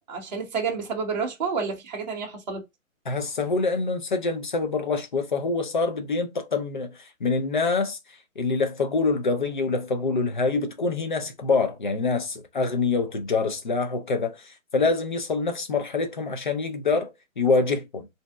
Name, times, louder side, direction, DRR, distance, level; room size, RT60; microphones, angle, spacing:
voice 1, 0.1-2.6, right 5 dB, 30° right, 0.8 m, -29 dB
voice 2, 3.1-8.0 8.4-18.1, left 4 dB, 35° left, 0.5 m, -25 dB
2.6 x 2.1 x 3.2 m
hypercardioid pair, 160°, 41 cm